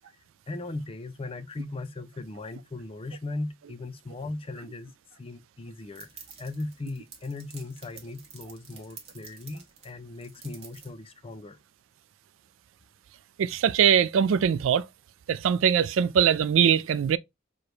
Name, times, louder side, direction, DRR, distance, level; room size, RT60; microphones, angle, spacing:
voice 1, 0.5-4.9 5.2-11.6, left 2 dB, 30° left, 0.4 m, -38 dB
sound 1, 6.0-10.9, right 5 dB, 30° right, 1.0 m, -50 dB
voice 2, 13.4-14.9 15.3-17.2, right 8 dB, 75° right, 0.3 m, -22 dB
4.8 x 2.2 x 3.1 m
head